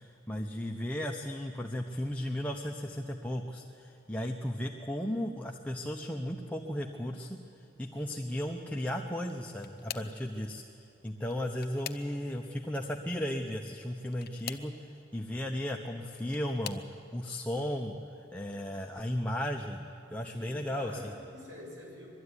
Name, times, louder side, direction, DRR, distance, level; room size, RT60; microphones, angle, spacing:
voice 1, 0.3-7.4 7.8-10.6 11.0-14.7 15.1-16.8 17.1-17.9 18.3-19.8 20.1-21.1, equal, 5° left, 1 dB, 0.8 m, -35 dB
sound 1, 9.2-10.2 11.2-12.5 14.1-14.8 15.8-16.9 17.7-18.0 18.4-18.6 19.9-20.0, left 9 dB, 55° left, 0.8 m, -44 dB
voice 2, 20.3-22.1, equal, 90° right, -2 dB, 6.5 m, -46 dB
21.5 x 13.0 x 9.8 m, 2.8 s
head